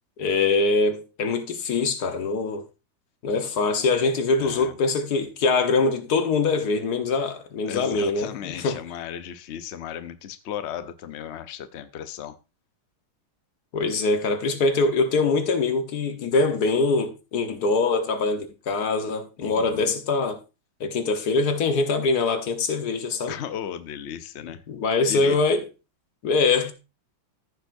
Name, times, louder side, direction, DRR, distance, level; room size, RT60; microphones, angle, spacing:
voice 1, 0.2-2.6 3.2-8.8 13.7-20.4 20.8-23.4 24.7-25.6 26.2-26.7, left 3 dB, 55° left, 1.7 m, -23 dB
voice 2, 4.4-4.7 7.7-12.4 19.4-19.9 23.3-24.6 25.1-25.4, left 9 dB, 85° left, 0.6 m, -35 dB
15.0 x 6.9 x 2.6 m
omnidirectional pair, 2.2 m